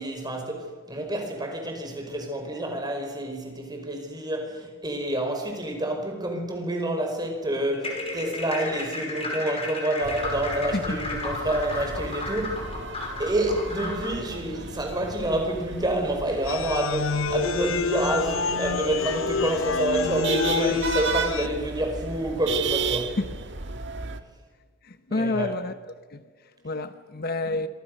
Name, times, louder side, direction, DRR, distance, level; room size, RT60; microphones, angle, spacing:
voice 1, 0.0-12.9 13.2-23.2 25.1-25.6, right 1 dB, 20° right, 5.1 m, -28 dB
sound 1, 7.7-14.2, left 2 dB, 30° left, 5.4 m, -34 dB
sound 2, 10.0-24.2, right 5 dB, 60° right, 1.7 m, -34 dB
sound 3, 16.4-21.5, left 5 dB, 70° left, 0.7 m, -28 dB
voice 2, 24.8-25.7 26.1-27.7, left 2 dB, 50° left, 1.0 m, -29 dB
27.0 x 25.5 x 6.6 m
head